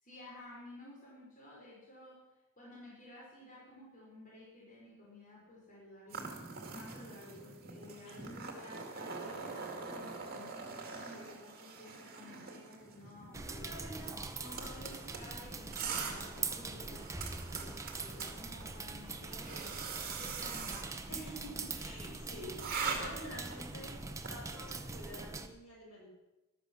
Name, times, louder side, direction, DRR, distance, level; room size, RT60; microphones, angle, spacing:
voice 1, 0.0-2.2 2.6-6.3 6.7-13.7 15.2-19.8 20.1-20.9, left 1 dB, 35° left, -6 dB, 5.0 m, -53 dB
sound 1, 6.1-24.4, right 5 dB, 45° right, 2.3 m, -44 dB
voice 2, 13.3-15.0 16.6-16.9 21.1-24.0 24.2-26.1, equal, 65° left, -3 dB, 6.7 m, -48 dB
sound 2, 13.3-25.5, right 3 dB, 15° right, 0.9 m, -43 dB
14.0 x 12.5 x 6.2 m, 1.0 s
head